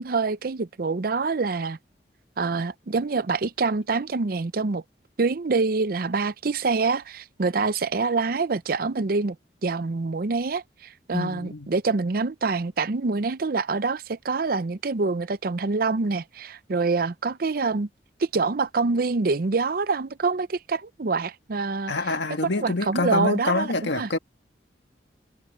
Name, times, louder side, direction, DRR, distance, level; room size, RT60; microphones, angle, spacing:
voice 1, 0.0-1.8 2.4-4.8 5.2-9.4 9.6-17.9 18.2-21.9 22.6-24.1, right 4 dB, 55° right, 0.6 m, -26 dB
voice 2, 11.1-11.7 21.9-24.2, left 3 dB, 85° left, 1.7 m, -26 dB
head